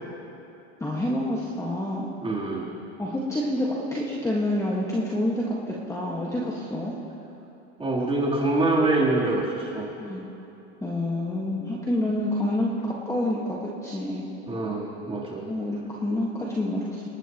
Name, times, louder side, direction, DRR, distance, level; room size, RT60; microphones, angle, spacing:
voice 1, 0.8-2.1 3.0-7.0 10.0-10.2 10.8-14.3 15.5-17.1, left 1 dB, 10° left, -4 dB, 1.6 m, -28 dB
voice 2, 2.2-2.7 7.8-9.9 14.5-15.4, right 2 dB, 15° right, -5 dB, 3.4 m, -25 dB
27.0 x 11.0 x 3.0 m, 2.8 s
supercardioid pair, 110°, 35 cm